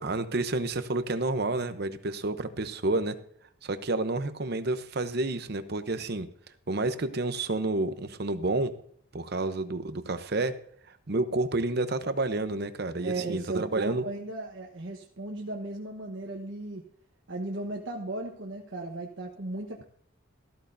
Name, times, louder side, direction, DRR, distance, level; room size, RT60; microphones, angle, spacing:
voice 1, 0.0-3.2 3.6-6.3 6.7-8.7 9.1-10.5 11.1-14.0, right 2 dB, 50° right, 10 dB, 0.8 m, -29 dB
voice 2, 13.0-16.8 17.3-19.8, right 2 dB, 65° right, 0 dB, 1.2 m, -36 dB
14.0 x 12.5 x 2.7 m, 0.64 s
head